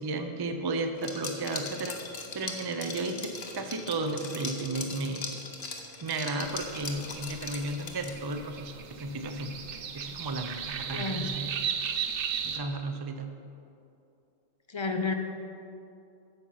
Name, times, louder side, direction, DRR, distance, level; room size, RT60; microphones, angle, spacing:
voice 1, 0.0-2.0 2.3-5.4 6.0-9.6 9.9-11.5 12.4-13.3, right 2 dB, 35° right, 6 dB, 0.4 m, -34 dB
Liquid, 1.0-8.4, left 4 dB, 50° left, 1.1 m, -40 dB
sound 1, 6.4-12.6, right 7 dB, 80° right, 1.0 m, -36 dB
voice 2, 10.9-11.3 14.7-15.1, left 4 dB, 35° left, 5 dB, 0.5 m, -30 dB
9.7 x 7.0 x 5.6 m, 2.7 s
omnidirectional pair, 1.2 m